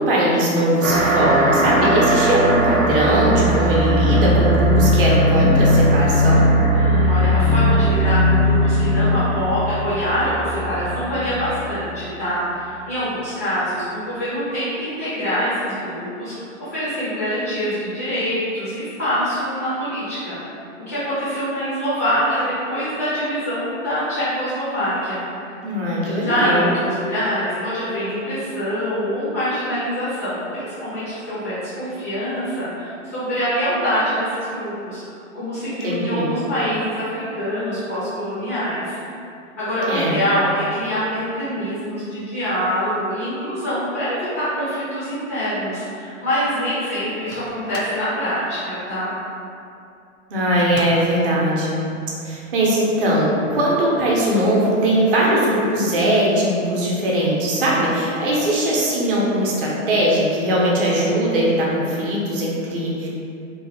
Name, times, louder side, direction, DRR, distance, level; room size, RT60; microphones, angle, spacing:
voice 1, 0.0-6.5 25.6-26.7 35.8-36.3 39.9-40.2 50.3-51.8 52.2-63.1, right 1 dB, 45° right, -5 dB, 0.6 m, -20 dB
sound 1, 0.8-11.8, equal, 90° right, 0.6 m, -18 dB
voice 2, 6.7-16.3 16.6-20.4 20.9-25.3 26.0-35.0 35.3-39.0 39.6-49.2, equal, 15° left, -12 dB, 0.3 m, -24 dB
Microwave oven, 47.0-48.1 50.6-51.2, left 2 dB, 75° left, 0.5 m, -35 dB
2.7 x 2.2 x 2.6 m, 2.5 s
figure-of-eight pair, 110°, 40 cm